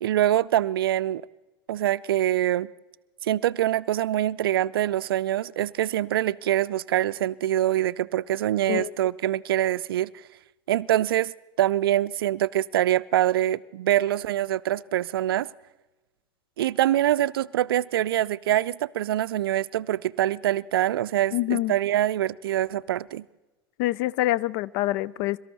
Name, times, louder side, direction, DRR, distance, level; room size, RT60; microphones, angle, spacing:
voice 1, 0.0-1.2 1.7-2.7 3.2-10.1 10.7-15.5 16.6-23.2, right 12 dB, 75° right, 0.4 m, -24 dB
voice 2, 21.3-21.7 23.8-25.4, left 16 dB, 60° left, 0.5 m, -26 dB
23.0 x 13.5 x 4.1 m
hypercardioid pair, 80°, 12 cm